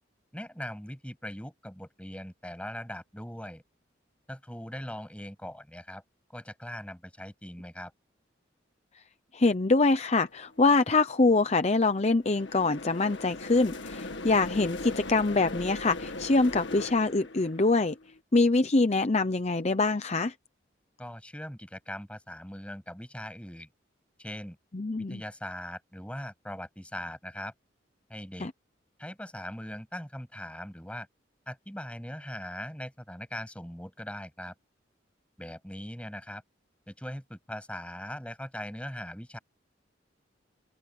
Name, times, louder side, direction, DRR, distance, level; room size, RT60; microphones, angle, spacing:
voice 1, 0.3-3.6 4.3-6.0 6.3-7.9 21.0-23.7 24.2-24.6 25.0-27.5 28.1-28.5 29.0-31.1 31.5-34.5 35.4-36.4 36.9-39.4, left 1 dB, 5° left, 7.9 m, -40 dB
voice 2, 9.3-18.0 18.3-20.3 24.7-25.2 28.4-28.5, left 3 dB, 35° left, 0.7 m, -24 dB
sound 1, 10.3-10.6 11.0-18.2, left 2 dB, 70° left, 1.8 m, -40 dB
open air
head